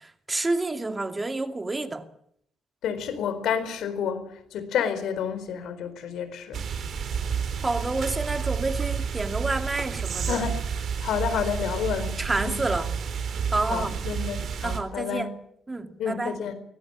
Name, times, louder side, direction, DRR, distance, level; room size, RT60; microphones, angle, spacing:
voice 1, 0.0-2.1 7.6-10.4 12.2-12.9 13.5-13.9 14.6-15.4 15.7-16.4, right 2 dB, 20° right, 2.7 m, -29 dB
voice 2, 2.8-6.7 10.3-10.6 11.0-12.1 12.4-12.6 13.7-15.3 16.0-16.5, left 8 dB, 80° left, 4.4 m, -29 dB
sound 1, 6.5-14.8, right 6 dB, 60° right, 3.8 m, -30 dB
24.0 x 17.0 x 8.8 m
cardioid pair, 90°, 0 cm